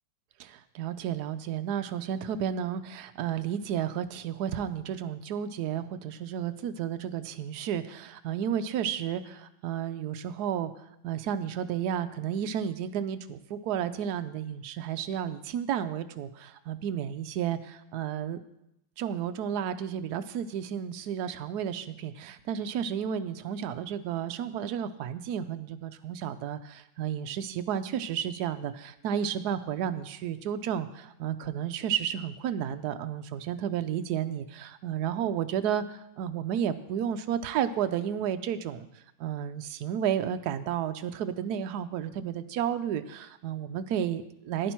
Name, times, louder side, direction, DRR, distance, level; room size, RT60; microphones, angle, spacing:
voice 1, 0.4-10.7 11.0-18.4 19.0-38.9 39.2-44.7, right 9 dB, 70° right, 10 dB, 1.0 m, -32 dB
11.5 x 10.0 x 4.5 m, 0.84 s
omnidirectional pair, 2.2 m